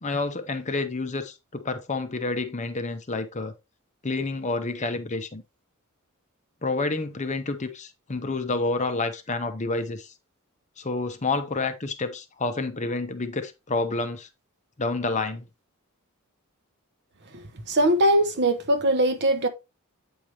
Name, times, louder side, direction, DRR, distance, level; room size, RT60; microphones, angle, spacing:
voice 1, 0.0-3.5 4.0-5.4 6.6-10.1 10.8-14.3 14.8-15.5, left 3 dB, 30° left, 0.8 m, -29 dB
voice 2, 17.7-19.5, right 1 dB, 50° right, 1.1 m, -21 dB
8.7 x 4.7 x 3.3 m
head